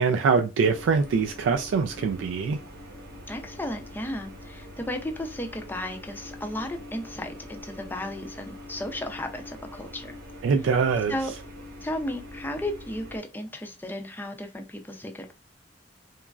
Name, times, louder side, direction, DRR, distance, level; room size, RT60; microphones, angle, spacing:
voice 1, 0.0-2.6 10.4-11.2, right 5 dB, 85° right, 0.3 m, -23 dB
sound 1, 0.7-13.2, left 1 dB, 60° right, 0.8 m, -44 dB
voice 2, 3.3-10.2 11.1-11.3 11.8-15.3, left 1 dB, 10° left, 0.4 m, -34 dB
3.0 x 2.4 x 2.3 m
head